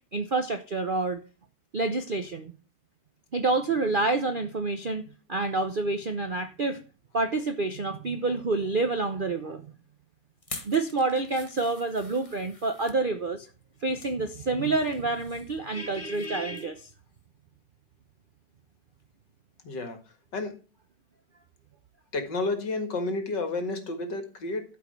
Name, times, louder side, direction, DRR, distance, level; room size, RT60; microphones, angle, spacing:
voice 1, 0.1-1.2 1.7-2.5 3.3-5.0 5.3-6.8 7.1-9.7 10.6-13.5 13.8-16.9, right 3 dB, 50° right, 8 dB, 0.6 m, -28 dB
sound 1, 10.4-13.0 13.6-14.2 14.6-16.3 16.5-16.8 17.2-17.3, left 2 dB, 20° left, 1.2 m, -46 dB
voice 2, 19.6-20.0 20.3-20.5 22.1-24.6, left 3 dB, 70° left, 7 dB, 2.5 m, -30 dB
12.5 x 5.4 x 6.6 m, 0.35 s
omnidirectional pair, 2.0 m